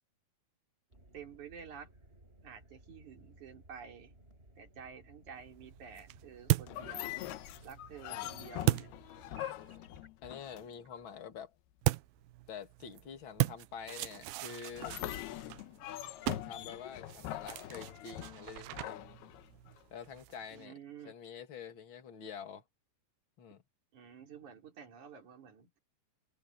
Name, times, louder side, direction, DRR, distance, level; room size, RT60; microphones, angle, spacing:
sound 1, 0.9-10.1, right 2 dB, 15° right, 6.1 m, -60 dB
voice 1, 1.1-1.9 2.4-4.1 4.6-7.2 7.6-8.9 20.5-21.1 23.9-25.7, right 7 dB, 50° right, 4.5 m, -50 dB
sound 2, 5.4-9.8 11.8-20.7, right 19 dB, 80° right, 2.3 m, -38 dB
sound 3, 6.7-11.0 14.7-19.8, left 14 dB, 80° left, 2.9 m, -43 dB
voice 2, 10.2-11.5 12.5-15.0 16.3-19.2 19.9-20.7 21.0-22.6 23.4-23.6, left 7 dB, 35° left, 2.5 m, -47 dB
omnidirectional pair, 4.6 m